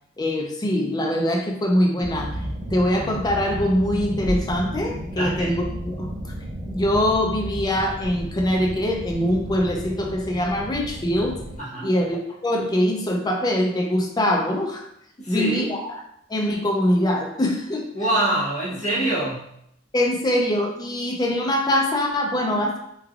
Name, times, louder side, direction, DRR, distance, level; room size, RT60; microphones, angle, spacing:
voice 1, 0.2-2.4 2.7-6.1 6.7-11.4 11.8-14.9 15.3-16.0 16.3-17.9 19.9-22.8, left 1 dB, 20° left, 1 dB, 0.4 m, -23 dB
sound 1, 2.0-11.6, equal, 45° right, 0.4 m, -33 dB
voice 2, 5.1-5.6 11.6-11.9 15.2-15.7 17.9-19.6, right 1 dB, 40° left, -7 dB, 0.9 m, -25 dB
3.2 x 2.3 x 2.3 m, 0.73 s
head